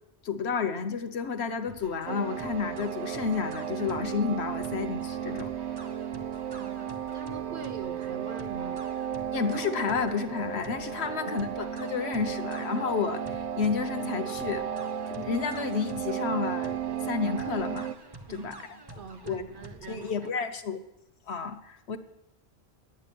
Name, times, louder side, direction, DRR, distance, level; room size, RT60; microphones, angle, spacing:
voice 1, 0.2-5.5 9.3-14.7 15.1-17.9 18.3-18.5 19.2-19.4 19.9-20.8 21.3-22.0, left 6 dB, 80° left, 9 dB, 1.2 m, -31 dB
sound 1, 1.7-20.3, right 2 dB, 25° right, 0.8 m, -48 dB
sound 2, 2.1-17.9, right 9 dB, 85° right, 0.9 m, -34 dB
voice 2, 6.5-8.9 11.0-11.3 18.3-20.5, right 4 dB, 55° right, 8 dB, 0.9 m, -44 dB
11.0 x 8.9 x 6.9 m, 0.88 s
omnidirectional pair, 1.1 m